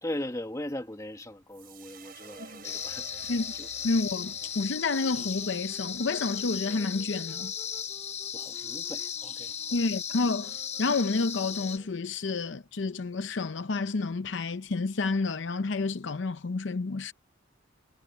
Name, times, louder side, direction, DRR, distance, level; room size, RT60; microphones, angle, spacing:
voice 1, 0.0-3.7 8.3-9.8, left 1 dB, 15° left, 1.8 m, -39 dB
sound 1, 1.5-7.8, right 5 dB, 50° right, 4.4 m, -53 dB
sound 2, 2.2-12.2, right 1 dB, 20° right, 2.9 m, -55 dB
sound 3, 2.6-11.8, left 8 dB, 35° left, 1.1 m, -36 dB
voice 2, 3.8-7.5 9.7-17.1, left 3 dB, 65° left, 0.6 m, -30 dB
head